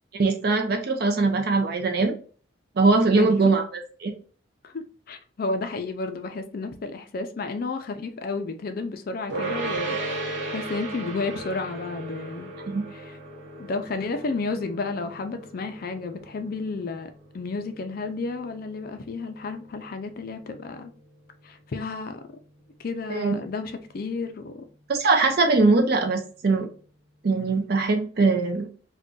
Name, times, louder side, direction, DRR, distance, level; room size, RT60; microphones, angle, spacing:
voice 1, 0.1-2.1 2.8-3.6 4.0-4.1 12.7-12.8 23.1-23.4 24.9-26.7 27.2-28.7, right 3 dB, 50° right, 0.5 m, -21 dB
voice 2, 3.1-3.5 4.6-12.5 12.9-13.2 13.6-17.1 17.3-20.9 21.4-22.2 22.8-24.6, left 3 dB, 50° left, 0.4 m, -32 dB
sound 1, 9.3-20.6, right 2 dB, 70° right, 0.9 m, -36 dB
2.5 x 2.2 x 3.6 m
head